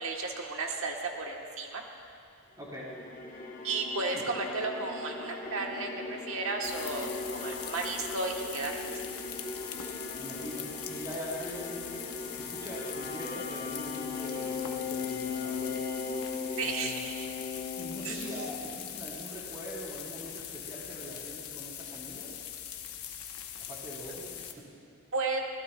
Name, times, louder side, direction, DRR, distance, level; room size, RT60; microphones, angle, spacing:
voice 1, 0.0-1.8 3.6-8.8 16.6-17.3 18.0-18.3 25.1-25.4, right 3 dB, 70° right, 1 dB, 1.3 m, -33 dB
voice 2, 2.6-2.9 4.1-4.2 10.1-12.1 12.3-15.8 16.6-17.1 17.8-22.3 23.7-24.3, equal, 15° right, -6 dB, 3.7 m, -42 dB
sound 1, 2.7-19.0, left 4 dB, 40° left, 1.2 m, -39 dB
sound 2, 6.6-24.5, left 9 dB, 90° left, 0.9 m, -42 dB
24.0 x 16.0 x 2.3 m, 2.7 s
head